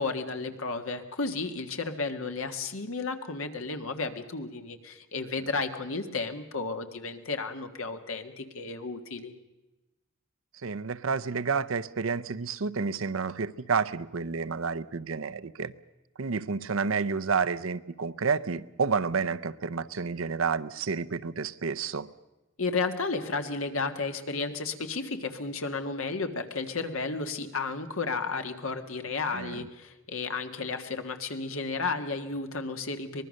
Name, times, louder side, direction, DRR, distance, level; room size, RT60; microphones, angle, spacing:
voice 1, 0.0-9.4 22.6-33.2, left 4 dB, 80° left, 7 dB, 1.7 m, -33 dB
voice 2, 10.6-15.7 16.2-22.1 29.3-29.7, right 5 dB, 75° right, 13 dB, 0.7 m, -30 dB
24.0 x 20.5 x 6.5 m, 1.0 s
head